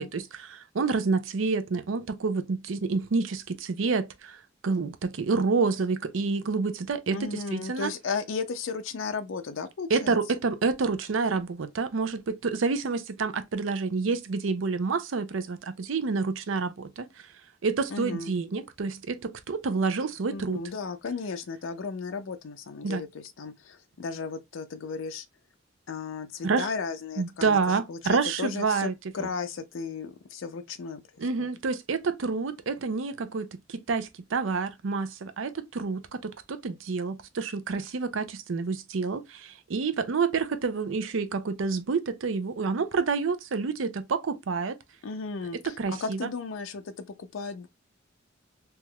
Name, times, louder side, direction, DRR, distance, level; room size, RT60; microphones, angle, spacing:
voice 1, 0.0-7.9 9.9-17.3 17.6-20.6 22.8-23.0 26.4-26.7 27.2-29.3 31.2-44.8 45.6-46.3, right 4 dB, 90° right, 0.5 m, -28 dB
voice 2, 7.1-10.2 17.9-18.3 20.3-25.3 25.9-28.9 29.1-31.5 45.0-45.7 46.0-47.7, left 4 dB, 90° left, 0.5 m, -35 dB
3.3 x 2.9 x 2.2 m
head